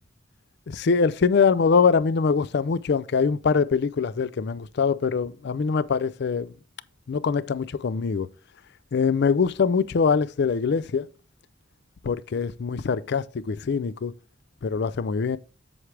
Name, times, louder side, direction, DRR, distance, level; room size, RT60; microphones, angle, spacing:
voice 1, 0.7-6.5 7.1-8.3 8.9-11.1 12.0-14.1 14.6-15.4, left 5 dB, 60° left, 0.4 m, -23 dB
7.9 x 7.2 x 3.3 m
head